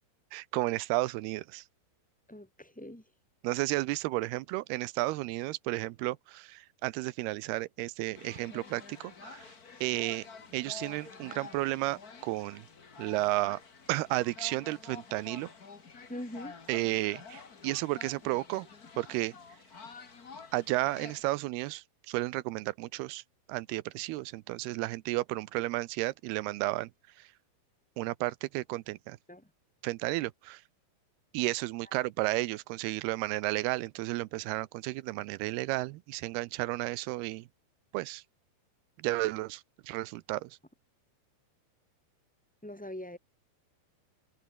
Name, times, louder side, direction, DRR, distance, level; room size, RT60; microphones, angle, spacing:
voice 1, 0.3-1.6 3.4-9.5 9.8-10.3 10.5-12.7 13.0-13.6 13.9-15.5 16.7-18.7 19.0-19.3 20.5-23.2 23.5-26.9 27.2-27.3 28.0-29.2 29.8-30.6 31.3-37.5 37.9-38.2 39.0-40.5, right 19 dB, 80° right, 2.7 m, -33 dB
voice 2, 2.3-3.0 16.1-16.5 29.3-29.5 42.6-43.2, left 1 dB, ahead, 3.3 m, -42 dB
sound 1, 8.1-21.2, left 5 dB, 30° left, 1.8 m, -49 dB
omnidirectional pair, 4.6 m